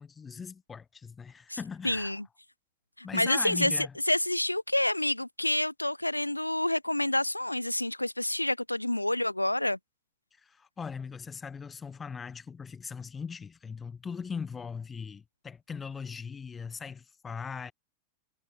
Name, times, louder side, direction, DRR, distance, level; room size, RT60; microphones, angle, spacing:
voice 1, 0.0-2.1 3.0-3.9 10.4-17.7, left 6 dB, 15° left, 0.6 m, -40 dB
voice 2, 1.8-2.3 3.0-9.8, left 1 dB, 85° left, 0.4 m, -28 dB
figure-of-eight pair, 90°, 0 cm